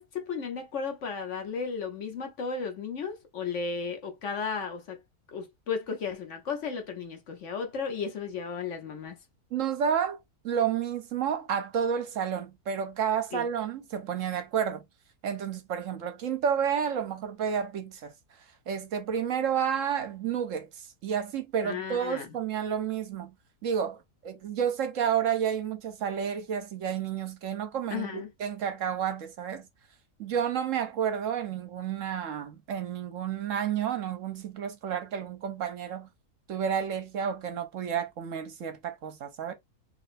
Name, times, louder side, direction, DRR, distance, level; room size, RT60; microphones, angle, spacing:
voice 1, 0.0-5.0 5.3-9.2 13.3-13.5 21.6-22.3 27.9-28.3, left 5 dB, 55° left, 1.1 m, -34 dB
voice 2, 9.5-10.2 10.4-14.8 15.2-18.1 18.7-23.4 23.6-29.7 30.2-36.1 36.5-39.5, right 8 dB, 65° right, 1.0 m, -30 dB
4.2 x 3.2 x 2.5 m
omnidirectional pair, 1.6 m